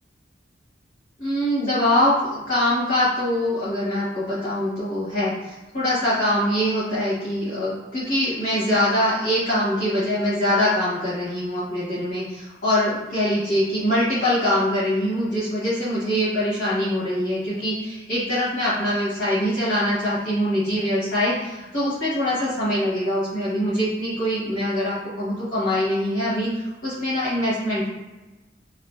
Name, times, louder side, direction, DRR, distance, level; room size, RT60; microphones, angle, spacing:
voice 1, 1.2-27.9, left 1 dB, 45° left, -10 dB, 0.9 m, -23 dB
2.5 x 2.4 x 2.2 m, 1.1 s
head